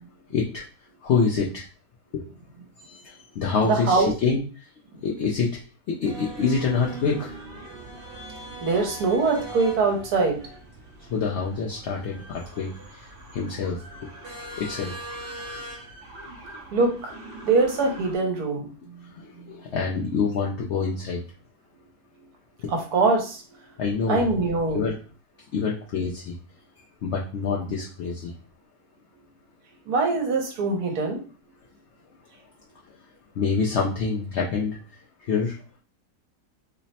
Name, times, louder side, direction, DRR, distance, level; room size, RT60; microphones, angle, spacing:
voice 1, 0.3-0.6 1.0-1.6 2.1-2.2 2.9-4.4 5.0-5.5 5.9-7.3 11.1-12.7 13.3-13.8 14.6-14.9 19.2-21.2 23.8-24.3 24.7-24.9 25.5-26.4 27.0-28.3 33.4-34.8 35.3-35.5, left 5 dB, 70° left, -2 dB, 0.6 m, -26 dB
voice 2, 3.6-4.1 8.6-10.4 16.7-17.1 17.4-19.0 22.7-23.4 24.1-24.9 29.9-31.2, right 3 dB, 75° right, 2 dB, 1.3 m, -23 dB
sound 1, 6.0-18.1, right 1 dB, 45° right, 0.8 m, -41 dB
3.2 x 2.0 x 4.0 m, 0.38 s
omnidirectional pair, 1.7 m